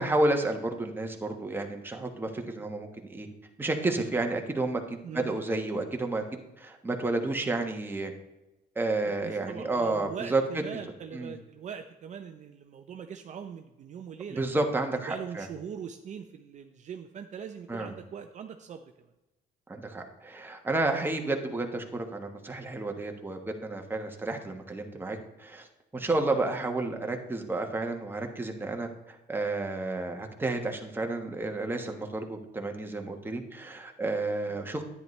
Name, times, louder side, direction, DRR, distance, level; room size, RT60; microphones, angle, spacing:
voice 1, 0.0-3.3 3.6-6.2 6.6-8.1 8.7-10.4 11.1-11.3 14.3-15.5 17.7-17.9 19.7-25.7 25.9-34.8, right 2 dB, 10° right, 3 dB, 1.2 m, -31 dB
voice 2, 5.0-5.4 9.0-14.4 15.1-19.1, right 7 dB, 45° right, 6 dB, 0.6 m, -41 dB
10.0 x 9.4 x 3.2 m, 0.99 s
cardioid pair, 110°, 17 cm